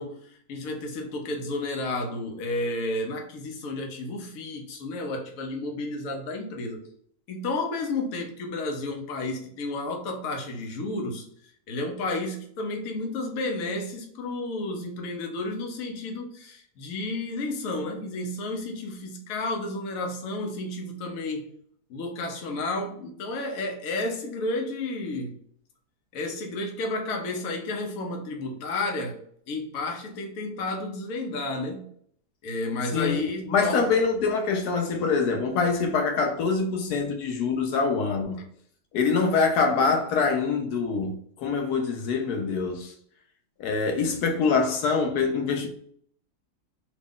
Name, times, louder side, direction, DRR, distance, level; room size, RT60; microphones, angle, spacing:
voice 1, 0.0-6.8 7.3-11.3 11.7-21.5 21.9-25.4 26.1-29.2 29.5-31.9 32.4-33.8, left 2 dB, 65° left, 1.1 m, -32 dB
voice 2, 33.5-38.4 38.9-42.9 43.6-45.7, left 4 dB, 85° left, 1.2 m, -24 dB
3.0 x 2.5 x 3.5 m
omnidirectional pair, 1.6 m